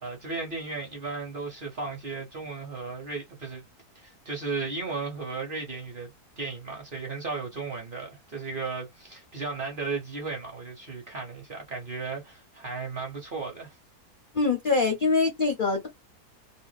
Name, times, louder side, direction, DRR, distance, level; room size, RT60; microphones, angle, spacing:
voice 1, 0.0-3.7 3.9-13.7, right 4 dB, 40° right, 0.9 m, -35 dB
voice 2, 14.3-15.9, left 4 dB, 55° left, 0.6 m, -24 dB
2.7 x 2.0 x 3.1 m
omnidirectional pair, 1.7 m